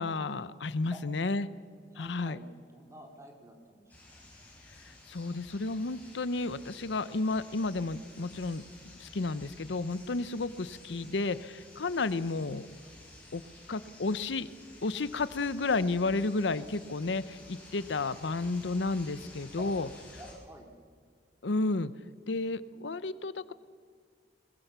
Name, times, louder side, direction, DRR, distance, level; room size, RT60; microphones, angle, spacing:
voice 1, 0.0-1.5 2.0-2.4 5.1-8.7 9.0-12.7 13.3-13.4 13.7-14.5 14.8-19.9 21.4-21.9 22.3-23.5, left 3 dB, 75° left, 16 dB, 0.7 m, -32 dB
voice 2, 1.9-2.5 2.7-3.9 13.1-13.3 19.6-19.7 20.1-20.7, right 1 dB, 15° right, 2 dB, 3.0 m, -50 dB
sound 1, 3.9-20.3, left 1 dB, 10° left, 6.5 m, -52 dB
21.0 x 21.0 x 6.8 m, 2.1 s
head